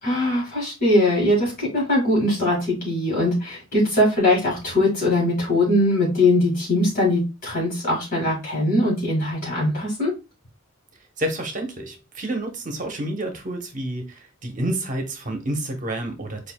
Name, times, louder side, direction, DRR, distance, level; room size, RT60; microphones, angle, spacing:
voice 1, 0.0-10.1, left 1 dB, 45° left, 1.9 m, -21 dB
voice 2, 11.2-16.5, right 1 dB, 40° right, 0.9 m, -29 dB
7.2 x 2.6 x 2.2 m
head